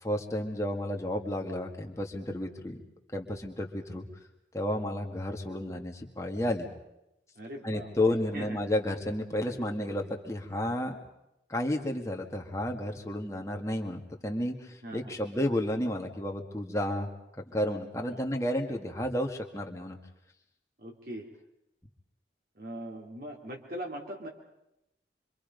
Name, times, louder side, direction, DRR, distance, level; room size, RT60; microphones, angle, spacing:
voice 1, 0.0-2.8 3.1-4.1 4.5-6.7 7.6-11.0 11.5-17.1 17.4-20.0, left 1 dB, 15° left, 2 dB, 2.1 m, -32 dB
voice 2, 7.4-7.9 8.3-8.6 14.8-15.3 18.1-18.3 20.8-21.3 22.6-24.3, right 1 dB, 55° right, 0 dB, 2.5 m, -41 dB
26.0 x 25.5 x 5.4 m, 0.86 s
head